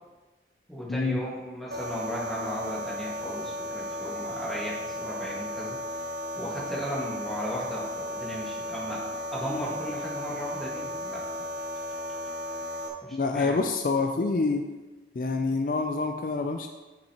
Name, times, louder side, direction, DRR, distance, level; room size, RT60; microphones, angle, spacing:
voice 1, 0.7-5.8 6.4-11.2 13.0-13.6, equal, ahead, -6 dB, 1.7 m, -36 dB
sound 1, 1.7-12.9, left 1 dB, 60° right, 0.8 m, -35 dB
voice 2, 13.1-14.7 15.2-16.7, left 3 dB, 50° left, 5 dB, 0.4 m, -27 dB
10.5 x 5.4 x 2.9 m, 1.2 s
head